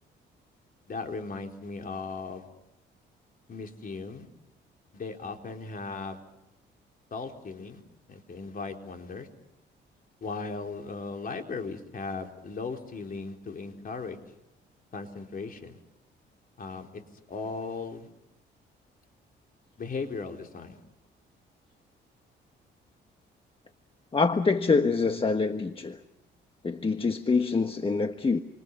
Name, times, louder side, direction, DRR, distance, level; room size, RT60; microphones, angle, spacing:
voice 1, 0.9-2.5 3.5-4.3 4.9-6.2 7.1-7.8 8.1-9.3 10.2-14.2 14.9-15.8 16.6-17.0 17.3-18.1 19.8-20.8, left 4 dB, 45° left, 3 dB, 4.2 m, -37 dB
voice 2, 24.1-26.0 26.6-28.4, left 4 dB, 25° left, 7 dB, 1.4 m, -25 dB
28.0 x 27.0 x 5.6 m, 0.87 s
cardioid pair, 90°, 20 cm